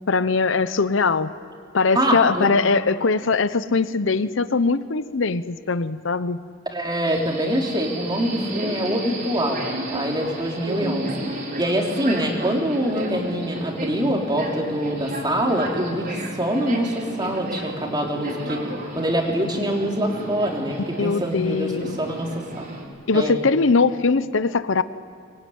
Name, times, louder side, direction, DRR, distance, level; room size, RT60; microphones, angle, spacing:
voice 1, 0.1-1.3 1.7-6.4 21.0-22.0 23.1-24.8, left 4 dB, 65° left, 14 dB, 0.8 m, -21 dB
voice 2, 1.9-2.5 6.7-11.1 11.6-16.1 16.4-18.6 19.0-21.7 22.0-22.6 23.1-23.4, equal, 20° right, 0 dB, 3.5 m, -24 dB
Subway metro underground, 7.0-22.8, right 1 dB, 50° right, 4.6 m, -33 dB
25.5 x 22.0 x 9.4 m, 2.2 s
head